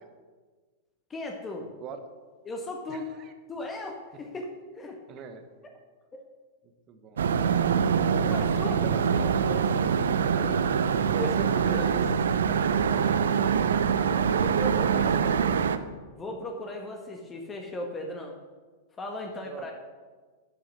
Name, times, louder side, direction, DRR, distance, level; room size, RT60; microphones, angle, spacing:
voice 1, 1.1-1.7 2.4-3.1 3.5-4.5 4.7-5.0 6.1-6.2 8.3-8.9 9.2-9.9 10.4-10.6 11.2-11.9 14.4-15.1 16.2-18.3 19.0-19.7, left 1 dB, 20° left, 2 dB, 1.6 m, -37 dB
voice 2, 2.9-3.3 5.1-5.4 6.9-7.2 8.1-9.9 10.3-10.5 11.1-12.1 12.5-13.6 13.9-15.7 19.4-19.7, right 5 dB, 35° right, 8 dB, 1.5 m, -41 dB
sound 1, 7.2-15.8, right 7 dB, 75° right, 0.6 m, -24 dB
11.5 x 6.3 x 6.3 m, 1.4 s
figure-of-eight pair, 100°, 0 cm